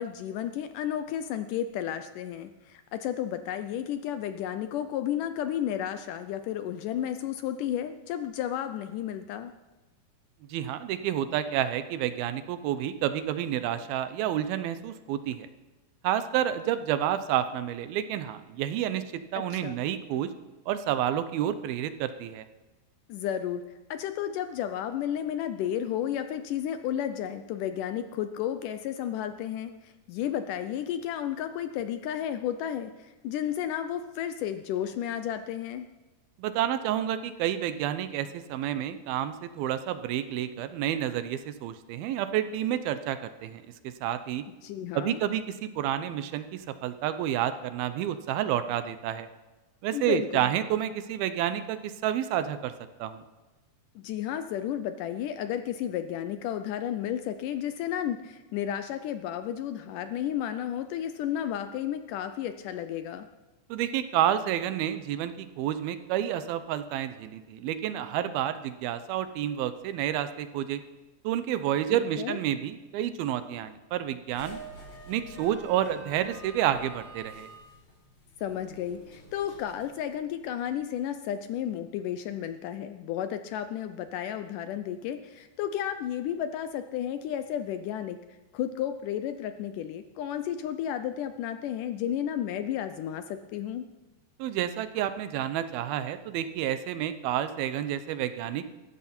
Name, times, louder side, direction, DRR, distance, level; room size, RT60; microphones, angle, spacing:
voice 1, 0.0-9.5 19.4-19.8 23.1-23.6 23.9-35.9 44.6-45.2 49.9-50.4 54.0-63.3 71.9-72.4 78.4-88.2 88.5-93.9, left 10 dB, 80° left, 9 dB, 1.9 m, -32 dB
voice 2, 10.5-15.5 16.0-19.0 19.3-20.3 20.7-22.5 36.4-44.4 44.9-49.3 49.8-52.7 53.0-53.2 63.7-70.8 71.2-74.6 75.1-77.5 94.4-98.6, right 11 dB, 80° right, 11 dB, 2.6 m, -29 dB
sound 1, 74.3-80.8, right 1 dB, 40° left, 4.7 m, -48 dB
18.5 x 14.5 x 4.4 m, 1.2 s
omnidirectional pair, 4.4 m